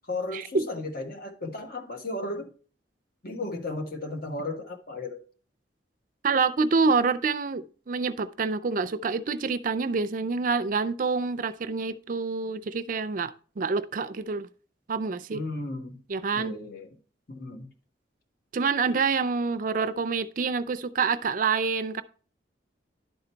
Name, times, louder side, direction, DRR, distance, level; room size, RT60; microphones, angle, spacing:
voice 1, 0.1-2.5 3.2-5.2 15.3-16.0 16.3-16.9 17.3-17.7, left 2 dB, 55° left, 1.5 m, -35 dB
voice 2, 6.2-14.5 14.9-15.4 16.1-16.6 18.5-22.0, right 4 dB, 45° right, 0.4 m, -27 dB
11.0 x 3.9 x 4.4 m
head